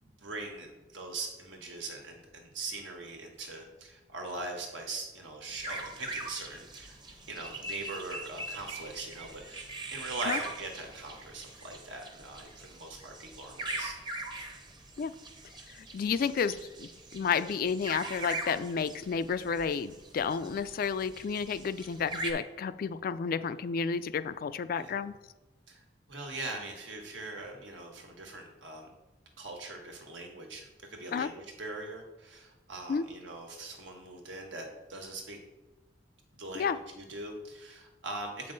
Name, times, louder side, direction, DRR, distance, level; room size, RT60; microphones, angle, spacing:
voice 1, 0.0-7.0 7.3-13.9 24.8-25.0 25.7-25.8 26.1-28.9 29.4-35.4 36.3-38.5, right 2 dB, 85° right, 2 dB, 1.4 m, -41 dB
sound 1, 5.5-22.3, right 2 dB, 25° right, 0.8 m, -42 dB
voice 2, 15.7-25.2 31.1-31.3 32.9-33.0 36.6-36.8, left 6 dB, 50° left, 14 dB, 0.3 m, -31 dB
7.5 x 5.4 x 3.9 m, 1.1 s
head